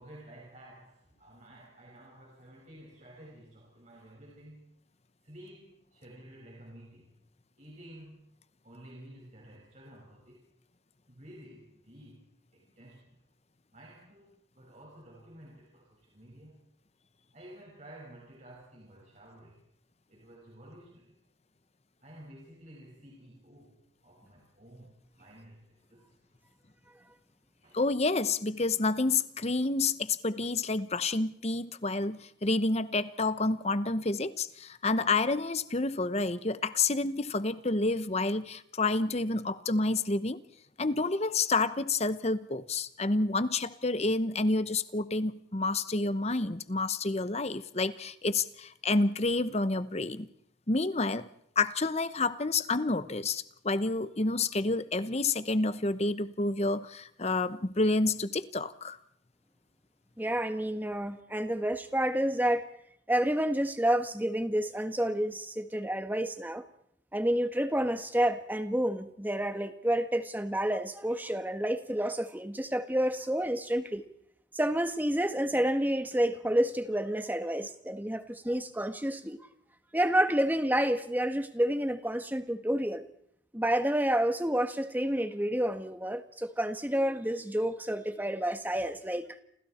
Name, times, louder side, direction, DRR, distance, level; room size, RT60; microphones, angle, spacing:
voice 1, 0.0-4.7 5.2-7.2 7.6-8.2 8.6-10.5 11.1-13.2 13.7-16.6 17.3-19.6 20.1-21.2 22.0-26.1 27.6-27.8, right 1 dB, 35° right, -3 dB, 5.6 m, -52 dB
voice 2, 27.7-40.4 40.8-50.3 50.7-51.3 51.6-59.0, left 3 dB, 35° left, 13 dB, 0.9 m, -29 dB
voice 3, 60.2-62.7 63.1-66.6 67.1-74.1 74.5-79.4 79.9-83.0 83.5-89.4, right 1 dB, 10° right, 8 dB, 1.4 m, -29 dB
29.5 x 27.0 x 4.4 m, 0.71 s
head